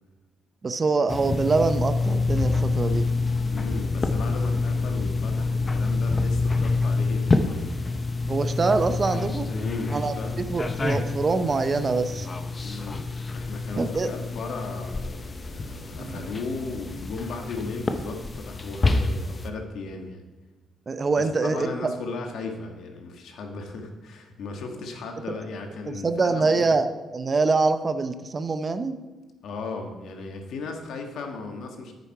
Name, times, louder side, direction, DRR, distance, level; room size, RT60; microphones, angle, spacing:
voice 1, 0.6-3.1 8.3-9.5 9.9-12.3 13.8-14.1 16.0-16.2 20.9-21.7 25.9-26.9 27.1-29.0, right 3 dB, 35° right, 11 dB, 0.6 m, -24 dB
sound 1, 1.1-19.5, left 3 dB, 30° left, 0.8 m, -27 dB
voice 2, 3.5-7.7 9.5-10.4 12.6-13.0 13.3-20.2 21.1-26.7 29.4-31.9, left 3 dB, 75° left, 4 dB, 1.4 m, -36 dB
9.0 x 6.9 x 4.8 m, 1.2 s
cardioid pair, 90°, 0 cm